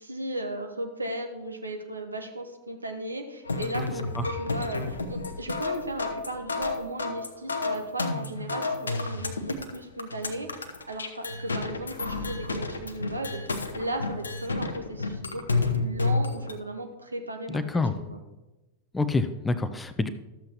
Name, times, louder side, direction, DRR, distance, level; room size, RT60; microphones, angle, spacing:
voice 1, 0.0-13.4 13.7-18.2, right 1 dB, 80° right, 4 dB, 1.0 m, -36 dB
sound 1, 3.4-16.5, left 3 dB, 75° left, 0.7 m, -30 dB
voice 2, 17.5-17.9 18.9-20.1, left 3 dB, 10° left, 11 dB, 0.5 m, -27 dB
12.5 x 7.5 x 3.0 m, 1.1 s
figure-of-eight pair, 90°, 0 cm